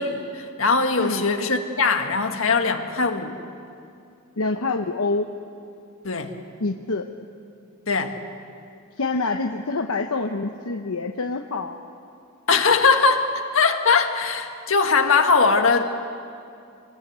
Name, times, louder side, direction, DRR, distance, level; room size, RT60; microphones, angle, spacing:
voice 1, 0.0-3.3 6.0-6.3 7.9-8.2 12.5-15.8, left 4 dB, 65° left, 4 dB, 1.8 m, -20 dB
voice 2, 4.4-5.3 6.6-7.0 9.0-11.8, left 3 dB, 80° left, 4 dB, 1.0 m, -26 dB
27.5 x 21.0 x 8.2 m, 2.5 s
head